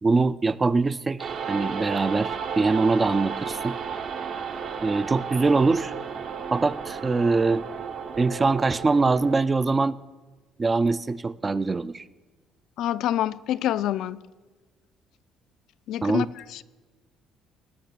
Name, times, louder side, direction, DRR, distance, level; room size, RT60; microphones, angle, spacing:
voice 1, 0.0-3.8 4.8-5.9 6.5-7.7 8.2-10.0 10.6-12.0 16.0-16.3, right 3 dB, 20° right, 0.3 m, -23 dB
sound 1, 1.2-9.4, right 6 dB, 50° right, 0.8 m, -33 dB
voice 2, 12.8-14.2 15.9-16.3 16.5-16.6, left 12 dB, 70° left, 0.4 m, -26 dB
18.0 x 6.1 x 6.7 m
cardioid pair, 120°, 0 cm